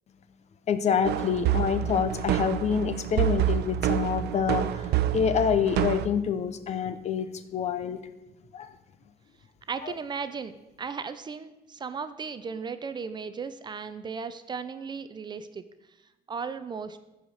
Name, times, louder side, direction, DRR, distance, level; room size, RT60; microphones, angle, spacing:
voice 1, 0.7-4.9 5.1-8.0 8.5-8.7 9.8-9.9, left 7 dB, 45° left, 12 dB, 0.7 m, -27 dB
sound 1, 1.1-6.1, right 12 dB, 90° right, 0.6 m, -27 dB
voice 2, 9.7-15.6 16.3-17.0, right 5 dB, 25° right, 12 dB, 0.5 m, -36 dB
14.0 x 4.9 x 6.2 m, 0.99 s
cardioid pair, 165°, 17 cm